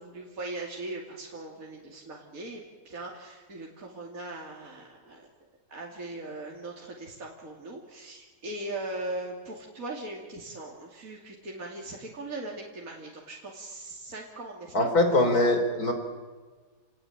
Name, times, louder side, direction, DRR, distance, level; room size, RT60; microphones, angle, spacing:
voice 1, 0.0-5.2 5.7-14.9, right 2 dB, 50° right, -2 dB, 3.2 m, -39 dB
voice 2, 14.7-15.9, left 1 dB, 55° left, 5 dB, 4.3 m, -22 dB
29.0 x 19.0 x 9.2 m, 1.4 s
omnidirectional pair, 1.9 m